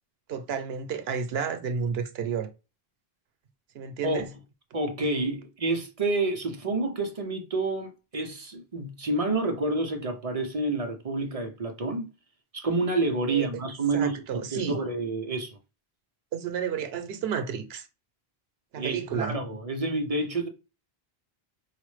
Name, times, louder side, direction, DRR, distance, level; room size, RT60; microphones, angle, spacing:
voice 1, 0.3-2.5 3.7-4.3 13.3-13.5 13.9-14.8 16.3-17.9 18.7-19.4, right 7 dB, 80° right, 0.9 m, -31 dB
voice 2, 4.7-12.1 12.5-15.6 18.8-20.5, right 2 dB, 40° right, 0.6 m, -29 dB
4.8 x 2.0 x 3.1 m
omnidirectional pair, 1.0 m